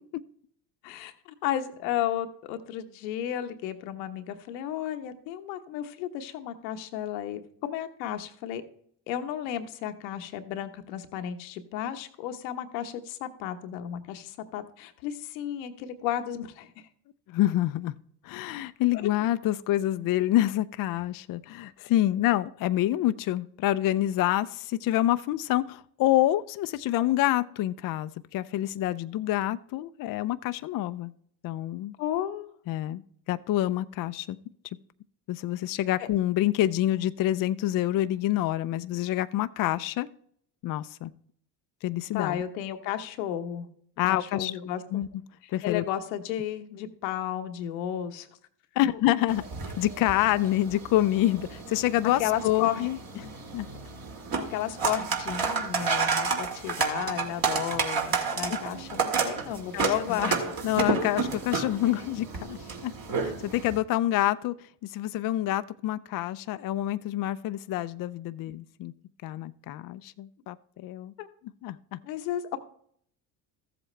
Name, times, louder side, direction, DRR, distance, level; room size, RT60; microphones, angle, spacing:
voice 1, 0.8-8.6 9.1-16.7 18.9-19.1 32.0-32.5 36.0-36.1 42.1-43.7 44.1-44.8 45.4-48.3 52.2-52.9 53.1-53.3 54.5-60.4 68.5-68.6 71.2-71.3 72.0-72.6, left 11 dB, 85° left, 7 dB, 1.1 m, -33 dB
voice 2, 17.3-17.9 18.2-31.1 31.4-31.9 32.7-33.0 33.3-34.4 35.3-40.1 40.6-41.1 41.8-42.4 44.0-44.5 44.9-45.1 45.5-45.8 48.8-49.4 49.8-53.0 53.5-53.7 58.5-58.6 59.7-60.4 60.6-62.9 63.2-64.6 64.8-68.9 69.2-71.1 71.6-72.0, left 14 dB, 45° left, 12 dB, 0.5 m, -27 dB
sound 1, 49.3-63.8, right 5 dB, 45° right, 2.2 m, -31 dB
14.0 x 7.7 x 3.2 m, 0.65 s
supercardioid pair, 85°, 50 cm